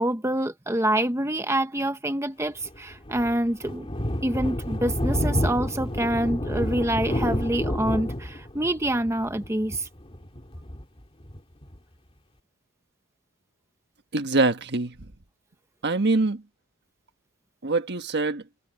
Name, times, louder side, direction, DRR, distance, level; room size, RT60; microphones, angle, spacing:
voice 1, 0.0-3.9 4.2-9.9, right 1 dB, 10° right, 1.0 m, -26 dB
Thunder, 2.6-11.8, equal, 25° left, 2.4 m, -29 dB
voice 2, 14.1-15.0 15.8-16.4 17.6-18.4, right 3 dB, 50° right, 1.4 m, -24 dB
head